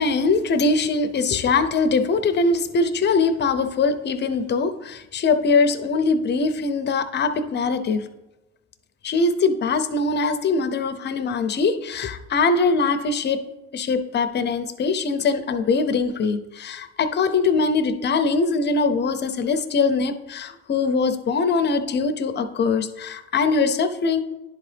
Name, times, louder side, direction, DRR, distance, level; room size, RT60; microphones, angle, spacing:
voice 1, 0.0-8.0 9.0-13.4 13.7-24.2, left 4 dB, 30° left, 10 dB, 0.6 m, -22 dB
10.5 x 3.9 x 3.3 m, 0.99 s
supercardioid pair, 100°, 37 cm